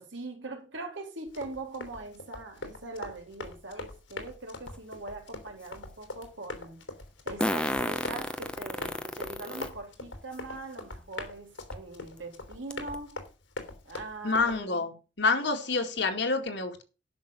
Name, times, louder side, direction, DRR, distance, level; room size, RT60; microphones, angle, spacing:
voice 1, 0.0-6.8 7.3-13.2 13.8-14.8, right 2 dB, 75° right, 3.5 m, -42 dB
Run, 1.3-14.6, left 2 dB, 85° left, 3.4 m, -43 dB
Fart, 4.7-4.8 7.4-9.7 10.3-10.4 11.7-11.8 12.2-12.3 12.7-12.9, left 1 dB, 5° left, 0.9 m, -31 dB
voice 2, 14.2-16.8, left 3 dB, 65° left, 2.2 m, -28 dB
11.0 x 6.3 x 7.0 m
head